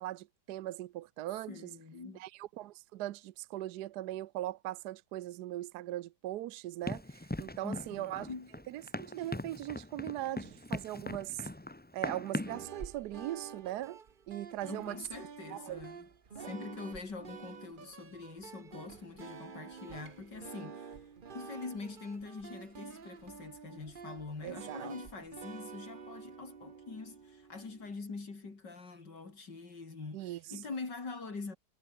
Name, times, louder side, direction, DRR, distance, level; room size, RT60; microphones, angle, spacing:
voice 1, 0.0-1.7 2.1-8.3 8.7-11.5 11.9-14.0 14.3-15.0 15.5-15.9 16.4-16.5 24.4-25.0 30.1-30.6, right 14 dB, 75° right, 1.2 m, -40 dB
voice 2, 1.5-2.2 7.6-8.5 14.6-16.1 16.3-21.1 21.3-31.6, left 4 dB, 90° left, 4.5 m, -44 dB
Run, 6.9-12.7, left 1 dB, 10° left, 0.5 m, -40 dB
sound 1, 12.5-27.9, right 6 dB, 35° right, 1.0 m, -49 dB
omnidirectional pair, 1.8 m